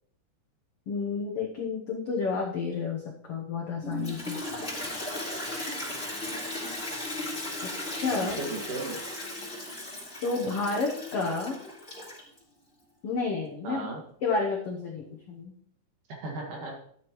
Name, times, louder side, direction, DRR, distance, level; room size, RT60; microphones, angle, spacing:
voice 1, 0.9-4.4 7.6-8.4 10.2-11.5 13.0-13.8 14.2-15.5, left 4 dB, 80° left, -1 dB, 1.3 m, -30 dB
Toilet flush, 3.8-12.4, left 1 dB, 15° left, 3.2 m, -36 dB
voice 2, 8.2-9.0 13.6-14.0 16.1-16.8, right 2 dB, 60° right, 1 dB, 3.2 m, -36 dB
12.5 x 9.5 x 3.1 m, 0.65 s
omnidirectional pair, 4.4 m